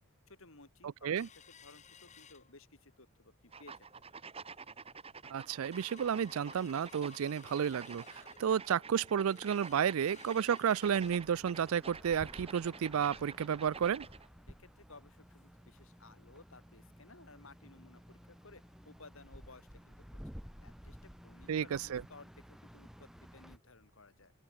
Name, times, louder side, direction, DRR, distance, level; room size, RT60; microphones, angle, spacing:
voice 1, 0.3-3.8 14.5-21.0 21.2-24.3, left 3 dB, 65° left, 2.7 m, -58 dB
sound 1, 1.2-3.0 3.4-3.5 3.9-4.2 4.7-4.8 5.1-15.7 16.0-16.1 16.5-16.6 17.2-17.3, left 6 dB, 30° left, 1.4 m, -60 dB
sound 2, 3.5-14.3, right 5 dB, 25° right, 1.4 m, -50 dB
voice 2, 5.3-14.1 21.5-22.0, right 8 dB, 70° right, 0.4 m, -32 dB
sound 3, 10.9-23.6, equal, ahead, 0.8 m, -54 dB
open air
head